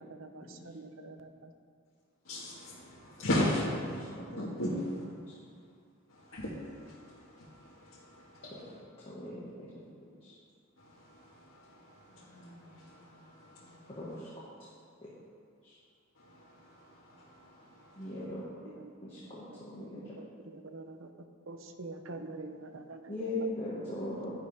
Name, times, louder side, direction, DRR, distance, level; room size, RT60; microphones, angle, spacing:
voice 1, 0.0-1.5 18.6-18.9 19.5-21.1 21.5-23.3 23.9-24.0, right 3 dB, 65° right, 7 dB, 0.8 m, -46 dB
voice 2, 2.3-4.0 4.3-5.1 6.1-8.8 10.8-14.2 16.2-18.2, left 1 dB, 75° left, -8 dB, 1.7 m, -38 dB
voice 3, 9.1-9.4 14.0-14.1 18.0-18.4 19.7-20.0 23.1-24.3, left 1 dB, 25° left, -9 dB, 1.8 m, -37 dB
11.5 x 10.5 x 3.6 m, 2.2 s
head